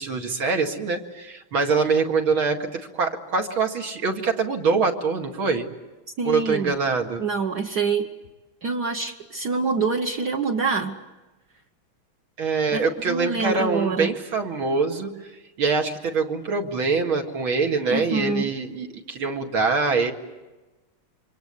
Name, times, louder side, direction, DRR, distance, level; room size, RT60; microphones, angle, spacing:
voice 1, 0.0-5.7 6.2-7.2 12.4-15.1 15.6-20.1, right 4 dB, 70° right, 2 dB, 2.9 m, -24 dB
voice 2, 6.2-6.7 7.2-8.0 8.6-10.9 12.7-14.1 17.9-18.5, right 5 dB, 50° right, 1 dB, 1.7 m, -25 dB
27.5 x 24.5 x 8.3 m, 1.1 s
omnidirectional pair, 2.4 m